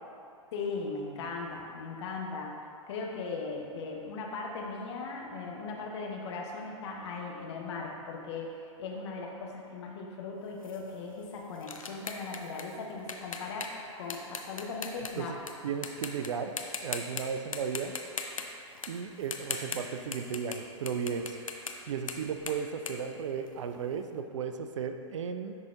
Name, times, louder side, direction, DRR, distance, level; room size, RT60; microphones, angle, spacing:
voice 1, 0.5-2.5 2.9-13.7 14.0-15.4, left 4 dB, 55° left, 0 dB, 0.9 m, -38 dB
sound 1, 10.6-15.5 15.8-16.3 16.6-17.2 17.5-20.6 20.9-23.9, left 4 dB, 90° left, 0.5 m, -39 dB
voice 2, 15.6-17.9 18.9-21.5 21.9-25.6, right 6 dB, 65° right, 8 dB, 0.4 m, -35 dB
10.5 x 3.9 x 2.4 m, 2.7 s
figure-of-eight pair, 105°, 17 cm